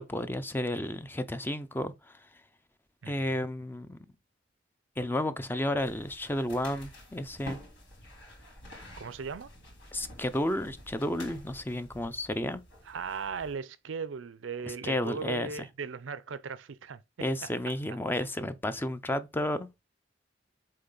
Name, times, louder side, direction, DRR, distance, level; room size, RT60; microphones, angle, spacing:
voice 1, 0.0-2.4 3.1-4.0 5.0-7.6 9.9-12.6 14.7-15.5 17.2-19.7, left 1 dB, 10° left, 0.5 m, -32 dB
voice 2, 3.0-3.5 9.0-9.5 12.9-17.0 17.4-17.5, right 5 dB, 90° right, 0.5 m, -38 dB
sound 1, 5.8-13.5, left 1 dB, 70° left, 3.8 m, -49 dB
7.8 x 3.3 x 3.8 m
head